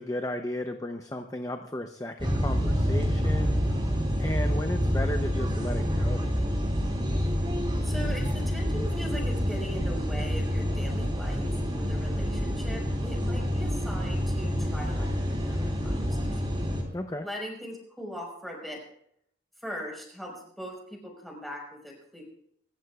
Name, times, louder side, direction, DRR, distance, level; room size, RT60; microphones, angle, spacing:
voice 1, 0.0-3.7 4.2-6.4 16.9-17.3, left 1 dB, 20° left, 6 dB, 0.7 m, -34 dB
sound 1, 2.2-16.8, equal, 25° right, 3.4 m, -27 dB
voice 2, 7.8-16.4 17.2-18.8 19.6-22.2, equal, ahead, -2 dB, 5.0 m, -40 dB
26.5 x 14.5 x 2.4 m, 0.69 s
head